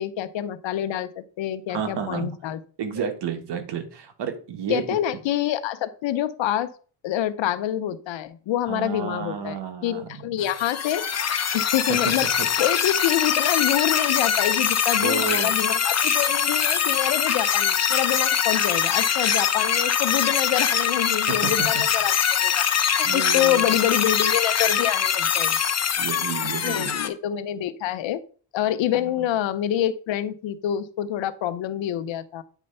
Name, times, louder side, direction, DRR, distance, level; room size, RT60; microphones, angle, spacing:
voice 1, 0.0-2.6 4.7-6.7 7.0-12.2 12.6-22.6 23.0-25.6 26.6-28.2 28.5-32.4, left 11 dB, 70° left, 13 dB, 0.9 m, -26 dB
voice 2, 1.7-2.3 2.8-5.0 8.7-10.3 11.9-12.5 15.0-15.5 21.3-21.7 23.0-23.6 26.0-27.0 29.0-29.3, right 7 dB, 60° right, 7 dB, 1.6 m, -31 dB
sound 1, 10.4-27.1, left 8 dB, 35° left, 0.9 m, -23 dB
9.2 x 4.3 x 5.5 m, 0.41 s
cardioid pair, 115°, 46 cm